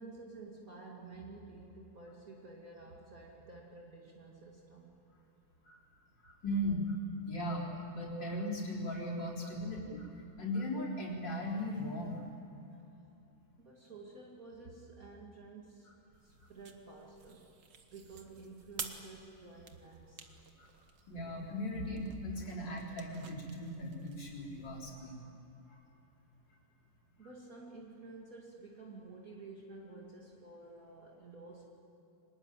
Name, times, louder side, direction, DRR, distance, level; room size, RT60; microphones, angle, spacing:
voice 1, 0.0-5.0 13.6-15.9 16.2-17.6 17.9-20.2 21.0-21.1 27.2-31.6, right 3 dB, 50° right, -2 dB, 2.7 m, -51 dB
voice 2, 6.2-10.1 10.4-12.3 20.6-20.7 21.1-25.2 25.7-25.8, equal, 70° left, -3 dB, 4.6 m, -38 dB
sound 1, 16.1-25.0, right 6 dB, 70° right, 2.1 m, -51 dB
24.5 x 20.5 x 9.1 m, 2.9 s
omnidirectional pair, 2.0 m